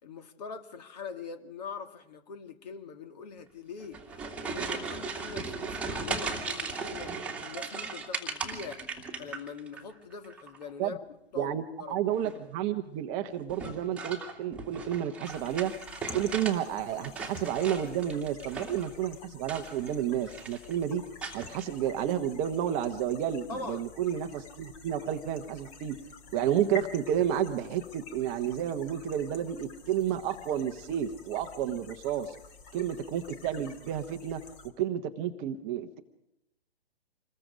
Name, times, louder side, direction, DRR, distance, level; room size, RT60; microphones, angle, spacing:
voice 1, 0.0-4.0 4.4-8.9 9.2-11.0 11.3-11.5 11.8-12.0 23.5-23.9, left 5 dB, 40° left, 2.3 m, -42 dB
sound 1, 3.8-9.8 10.1-10.7 12.1-12.5 13.5-16.6 16.9-18.9 19.4-20.0 20.3-20.7 21.2-21.7, right 4 dB, 5° right, 2.3 m, -37 dB
voice 2, 11.4-15.7 16.1-21.0 21.3-26.0 26.3-32.4 32.7-34.4 34.8-36.0, right 10 dB, 20° right, 1.0 m, -31 dB
sound 2, 15.2-34.7, left 4 dB, 25° left, 2.5 m, -49 dB
27.0 x 21.0 x 5.2 m
figure-of-eight pair, 125°, 32 cm